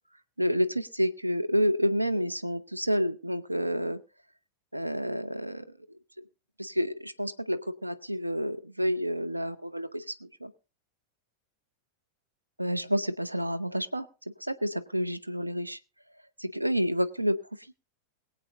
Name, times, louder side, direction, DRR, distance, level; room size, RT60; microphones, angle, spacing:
voice 1, 0.4-4.0 4.7-5.7 6.6-10.5 12.6-14.1 14.4-15.8 16.4-17.4, equal, 85° right, 11 dB, 0.8 m, -29 dB
22.0 x 8.1 x 3.8 m, 0.33 s
figure-of-eight pair, 90°, 0 cm